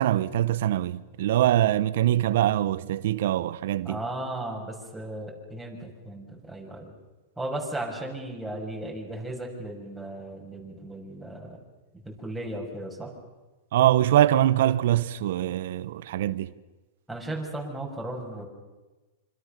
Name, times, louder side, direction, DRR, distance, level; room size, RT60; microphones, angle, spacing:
voice 1, 0.0-4.0 13.7-16.5, right 12 dB, 70° right, 1.1 m, -23 dB
voice 2, 3.8-6.9 7.4-11.6 12.0-13.1 17.1-18.5, right 1 dB, 5° right, 6.4 m, -36 dB
27.0 x 26.5 x 6.8 m
supercardioid pair, 145°, 0 cm